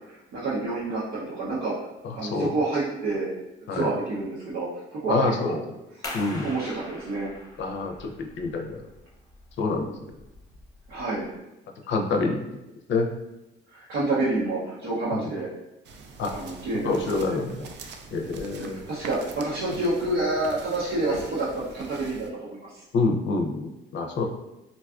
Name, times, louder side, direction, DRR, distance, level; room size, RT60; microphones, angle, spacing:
voice 1, 0.1-1.9 2.1-3.3 3.7-5.6 6.0-6.1 6.4-7.3 9.7-9.9 10.9-11.3 13.7-15.5 16.3-17.4 18.6-22.8, right 2 dB, 85° right, -9 dB, 0.7 m, -28 dB
voice 2, 2.0-2.6 3.7-3.9 5.1-5.6 6.1-6.5 7.6-8.8 9.6-9.9 11.9-12.4 12.9-13.1 15.1-15.3 16.2-16.3 16.8-17.6 18.1-18.8 22.9-24.2, left 3 dB, 65° left, 3 dB, 0.5 m, -27 dB
sound 1, 6.0-11.4, left 1 dB, 20° left, 0.7 m, -43 dB
sound 2, 15.8-22.3, right 3 dB, 60° right, 0.4 m, -44 dB
3.9 x 2.3 x 2.4 m, 0.94 s
cardioid pair, 90°, 20 cm